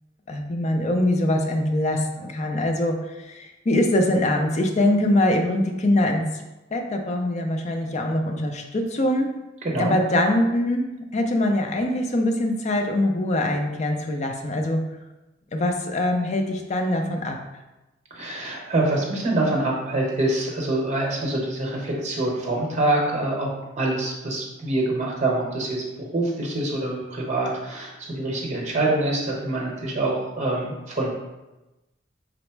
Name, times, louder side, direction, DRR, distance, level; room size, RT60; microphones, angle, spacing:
voice 1, 0.3-3.0 3.3-6.3 6.7-9.3 9.8-14.8 15.5-17.4, left 1 dB, 35° left, 4 dB, 0.4 m, -23 dB
voice 2, 9.6-10.0 18.1-23.5 23.8-31.1, right 2 dB, 40° right, -2 dB, 0.9 m, -25 dB
3.9 x 2.1 x 4.5 m, 1.0 s
head